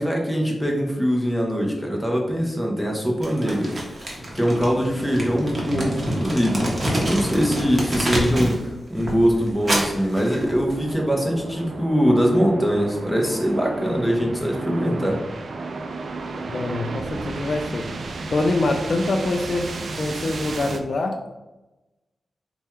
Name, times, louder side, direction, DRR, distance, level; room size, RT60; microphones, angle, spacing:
voice 1, 0.0-3.7 4.3-6.6 7.0-8.6 8.9-15.2, equal, 5° left, -1 dB, 0.7 m, -22 dB
Crumpling crinkling, 3.2-8.6 8.9-10.9, right 1 dB, 35° right, 0.9 m, -27 dB
sound 1, 10.2-20.8, right 3 dB, 60° right, 0.3 m, -33 dB
voice 2, 16.5-17.9 18.3-19.7 20.0-21.4, left 2 dB, 55° left, 3 dB, 0.3 m, -25 dB
3.4 x 2.3 x 4.3 m, 1.1 s
wide cardioid pair, 135°, 0 cm